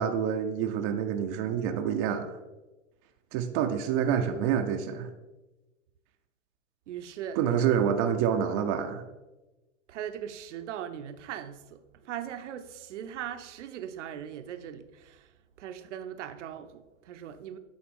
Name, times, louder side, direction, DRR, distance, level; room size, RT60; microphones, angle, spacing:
voice 1, 0.0-2.4 3.3-5.1 7.4-9.0, right 8 dB, 30° right, 0.4 m, -27 dB
voice 2, 6.9-7.4 7.7-7.8 9.9-15.3 15.6-17.6, right 9 dB, 65° right, 0.6 m, -40 dB
8.7 x 3.8 x 3.6 m
hypercardioid pair, 120°, 38 cm